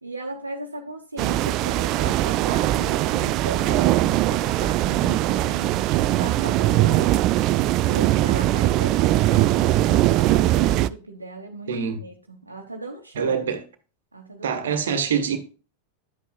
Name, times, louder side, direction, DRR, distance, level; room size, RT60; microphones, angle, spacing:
voice 1, 0.0-7.1 7.8-11.7 12.0-13.4 14.1-14.9, right 2 dB, 80° right, 1.1 m, -36 dB
sound 1, 1.2-10.9, right 15 dB, 40° right, 0.4 m, -21 dB
voice 2, 11.7-12.0 13.1-13.6 14.4-15.4, right 7 dB, 60° right, 1.4 m, -24 dB
11.0 x 8.3 x 2.3 m
figure-of-eight pair, 90°, 0 cm